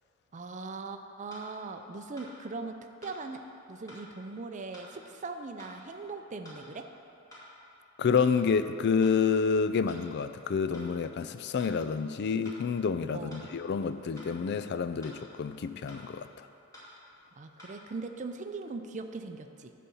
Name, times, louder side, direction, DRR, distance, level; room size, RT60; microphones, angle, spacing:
voice 1, 0.3-2.8 3.0-3.4 3.7-6.9 13.1-13.4 17.4-19.7, right 3 dB, 35° right, 6 dB, 0.5 m, -40 dB
sound 1, 1.3-1.5 2.2-2.3 3.0-3.2 3.9-4.0 4.7-4.9 5.6-5.8 6.4-6.6 7.3-7.5 8.2-8.3 9.0-9.2 9.9-10.0 10.7-10.9 11.6-11.8 12.4-12.6 13.3-13.5 14.2-14.3 15.0-15.2 15.9-16.0 16.7-16.9 17.6-17.8, left 1 dB, 15° left, 2.4 m, -50 dB
voice 2, 8.0-16.3, left 5 dB, 55° left, 11 dB, 0.4 m, -28 dB
11.0 x 4.2 x 7.0 m, 2.7 s
head